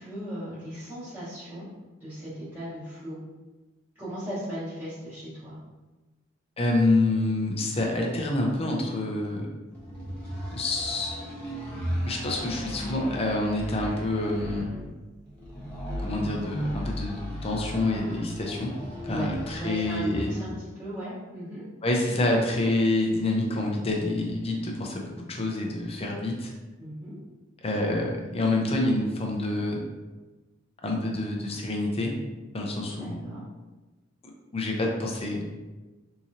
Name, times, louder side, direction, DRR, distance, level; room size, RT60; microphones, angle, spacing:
voice 1, 0.0-1.7 2.0-3.2 4.0-5.6 19.0-21.7 26.8-27.2 33.0-33.4, equal, 10° right, -15 dB, 1.4 m, -37 dB
voice 2, 6.6-9.5 10.5-11.1 12.0-14.7 16.0-18.7 19.0-20.3 21.8-26.5 27.6-29.8 30.8-32.2 32.5-33.3 34.5-35.4, left 2 dB, 30° left, 0 dB, 0.6 m, -27 dB
sound 1, 9.7-20.5, equal, 5° left, 1.2 m, -36 dB
3.7 x 2.9 x 2.7 m, 1.2 s
head